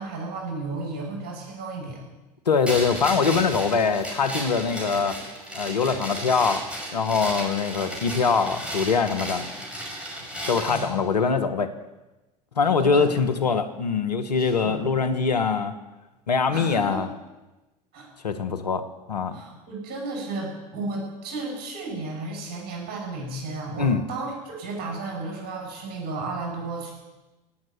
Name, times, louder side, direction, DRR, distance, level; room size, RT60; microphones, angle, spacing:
voice 1, 0.0-2.0 10.7-10.9 12.8-13.1 14.4-14.9 16.5-17.1 17.9-18.1 19.3-26.9, right 3 dB, 50° right, 1 dB, 7.1 m, -33 dB
voice 2, 2.5-5.2 5.5-6.6 6.9-9.5 10.5-11.7 12.6-15.7 16.3-17.1 18.2-19.4 23.8-24.0, left 5 dB, 85° left, 8 dB, 1.1 m, -23 dB
sound 1, 2.6-10.9, equal, 5° right, 5.6 m, -34 dB
17.0 x 7.6 x 9.1 m, 1.1 s
figure-of-eight pair, 70°, 20 cm